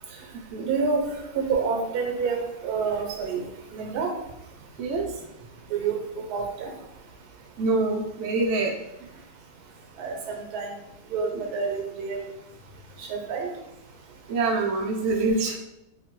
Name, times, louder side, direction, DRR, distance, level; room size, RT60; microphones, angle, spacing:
voice 1, 0.7-1.0 1.3-3.4 3.7-4.1 5.7-6.0 6.3-6.7 10.0-10.1 10.5-10.7 11.1-12.2 13.1-13.5, right 5 dB, 90° right, 2 dB, 1.1 m, -27 dB
voice 2, 4.8-5.2 7.6-8.7 14.3-15.6, right 3 dB, 65° right, 0 dB, 0.8 m, -25 dB
2.9 x 2.6 x 2.9 m, 0.88 s
omnidirectional pair, 1.6 m